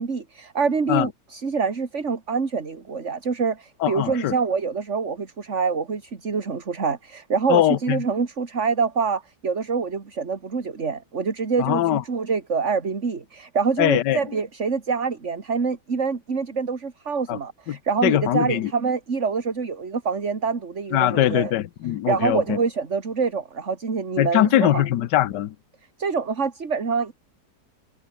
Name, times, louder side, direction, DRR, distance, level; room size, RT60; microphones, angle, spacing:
voice 1, 0.0-21.5 22.1-24.8 26.0-27.1, right 5 dB, 45° right, 2.4 m, -26 dB
voice 2, 3.8-4.3 7.5-8.0 11.6-12.0 13.8-14.2 17.3-17.4 17.7-18.7 20.9-22.6 24.2-25.5, left 13 dB, 80° left, 1.5 m, -21 dB
omnidirectional pair, 1.8 m